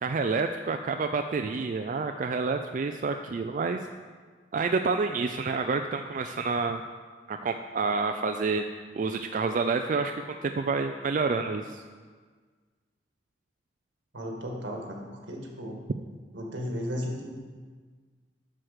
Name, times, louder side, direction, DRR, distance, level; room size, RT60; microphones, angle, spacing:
voice 1, 0.0-3.8 4.5-6.8 7.3-8.6 9.0-10.1 10.4-11.8, right 4 dB, 45° right, 6 dB, 0.3 m, -28 dB
voice 2, 14.1-15.8 16.3-17.3, equal, 80° right, 0 dB, 1.7 m, -35 dB
7.6 x 6.2 x 6.5 m, 1.5 s
head